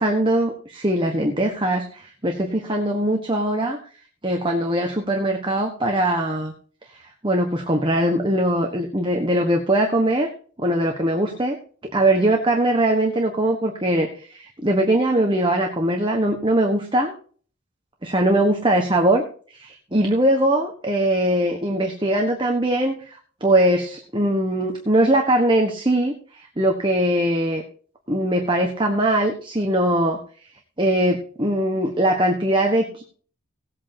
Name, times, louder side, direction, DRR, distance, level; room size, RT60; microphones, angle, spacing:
voice 1, 0.0-3.8 4.2-6.5 6.9-10.3 10.6-17.1 18.0-19.2 19.5-27.6 28.1-30.2 30.8-33.0, right 1 dB, 25° right, 2 dB, 1.3 m, -21 dB
18.0 x 8.5 x 2.9 m, 0.43 s
head